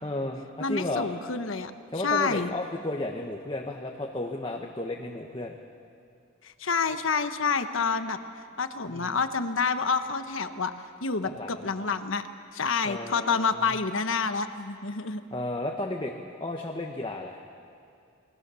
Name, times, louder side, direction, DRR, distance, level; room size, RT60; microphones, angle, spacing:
voice 1, 0.0-1.1 1.9-5.6 8.9-9.2 11.2-11.6 12.8-13.8 15.3-16.1 16.4-17.4, left 2 dB, 25° left, 1 dB, 1.2 m, -33 dB
voice 2, 0.6-2.5 6.4-8.2 8.6-10.7 11.0-12.2 12.5-15.2, left 5 dB, 70° left, 9 dB, 1.2 m, -28 dB
28.0 x 21.5 x 7.0 m, 2.4 s
head